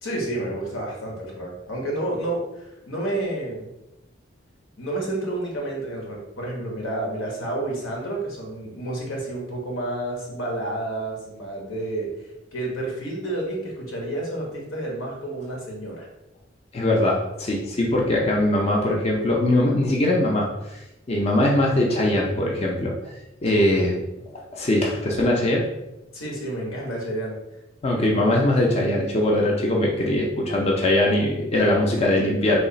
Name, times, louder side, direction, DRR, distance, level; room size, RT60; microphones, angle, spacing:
voice 1, 0.0-3.6 4.8-12.1 12.5-16.1 23.5-23.9 26.1-27.4, right 1 dB, 90° left, -2 dB, 1.0 m, -30 dB
voice 2, 16.7-20.8 21.1-22.9 23.4-24.0 24.5-25.7 27.8-32.6, left 1 dB, 30° left, -1 dB, 0.4 m, -21 dB
3.1 x 2.3 x 3.8 m, 0.94 s
head